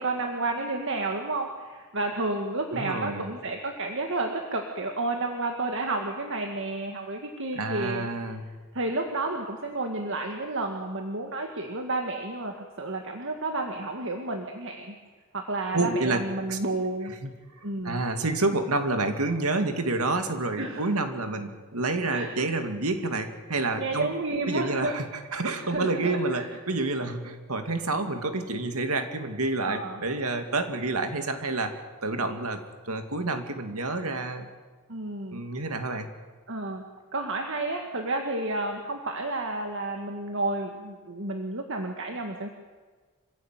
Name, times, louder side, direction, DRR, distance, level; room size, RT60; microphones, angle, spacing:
voice 1, 0.0-8.1 8.7-14.9 15.3-17.1 17.6-18.0 20.6-20.9 22.1-22.3 23.7-25.0 25.6-26.5 29.6-30.0 34.9-35.4 36.5-36.8 37.1-42.5, right 2 dB, 60° right, 3 dB, 2.0 m, -31 dB
voice 2, 2.7-3.3 7.5-8.5 15.7-16.6 17.2-17.3 17.6-24.1 24.5-34.5 35.3-36.1, right 2 dB, 80° right, 6 dB, 2.4 m, -29 dB
26.0 x 16.0 x 9.2 m, 1.4 s
head